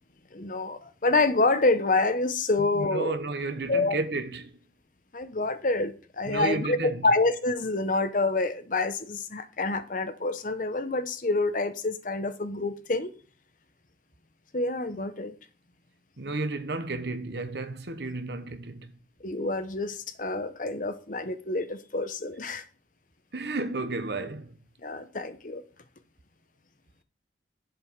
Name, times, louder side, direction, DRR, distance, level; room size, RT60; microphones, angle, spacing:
voice 1, 0.3-3.2 3.7-4.0 5.1-6.8 7.0-13.1 14.5-15.3 19.2-22.6 24.8-25.6, left 3 dB, 45° left, 0.8 m, -27 dB
voice 2, 2.6-4.6 6.2-7.0 16.2-18.9 23.3-24.6, right 2 dB, 70° right, 1.0 m, -32 dB
7.8 x 7.6 x 4.6 m
head